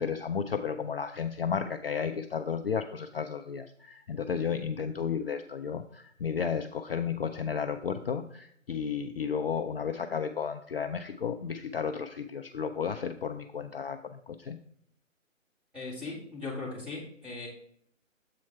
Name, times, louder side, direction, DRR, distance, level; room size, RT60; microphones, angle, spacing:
voice 1, 0.0-14.6, left 6 dB, 50° left, 7 dB, 0.4 m, -33 dB
voice 2, 15.7-17.5, left 3 dB, 5° right, -7 dB, 1.7 m, -38 dB
7.6 x 4.4 x 4.3 m, 0.65 s
figure-of-eight pair, 150°, 39 cm